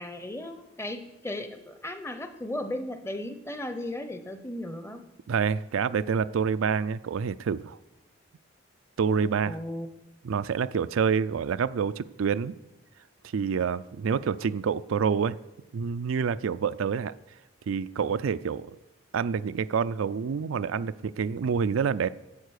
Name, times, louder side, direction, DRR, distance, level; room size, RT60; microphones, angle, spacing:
voice 1, 0.0-5.0 9.5-9.9, left 1 dB, 10° left, 9 dB, 0.7 m, -36 dB
voice 2, 5.3-7.8 9.0-9.6 10.2-12.5 13.3-15.4 15.7-17.1 17.7-18.7 19.1-22.1, right 6 dB, 90° right, 14 dB, 0.4 m, -27 dB
11.5 x 8.2 x 6.5 m, 0.98 s
head